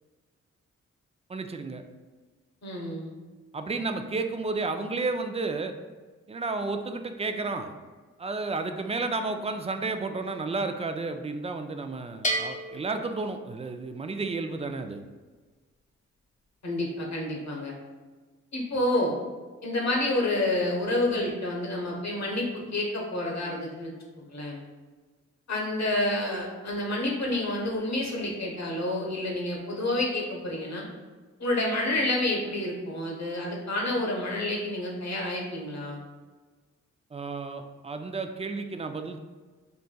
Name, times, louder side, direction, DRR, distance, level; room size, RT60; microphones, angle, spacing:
voice 1, 1.3-1.8 3.5-5.7 6.3-7.7 8.2-15.0 37.1-39.2, right 3 dB, 20° right, 7 dB, 0.3 m, -32 dB
voice 2, 2.6-3.1 16.6-17.7 18.5-19.1 19.6-24.6 25.5-30.9 31.4-36.0, left 1 dB, 55° left, -1 dB, 1.2 m, -29 dB
Bell, 12.2-14.0, right 1 dB, 25° left, 0.7 m, -33 dB
5.6 x 2.5 x 2.2 m, 1.4 s
supercardioid pair, 50°, 32 cm